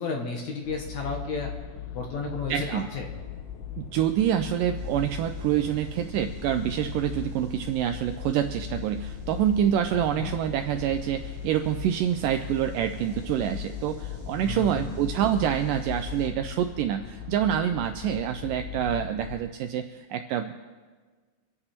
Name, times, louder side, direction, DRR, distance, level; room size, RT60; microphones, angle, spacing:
voice 1, 0.0-1.5 1.9-3.0 10.2-10.3 14.4-14.9, left 4 dB, 60° left, 2 dB, 2.2 m, -32 dB
sound 1, 0.6-19.4, left 9 dB, 80° left, 1.7 m, -39 dB
voice 2, 2.5-2.9 3.8-20.6, right 10 dB, 80° right, 7 dB, 1.9 m, -27 dB
sound 2, 4.7-16.3, left 2 dB, 10° right, 1.7 m, -44 dB
26.0 x 8.9 x 4.3 m, 1.4 s
omnidirectional pair, 4.3 m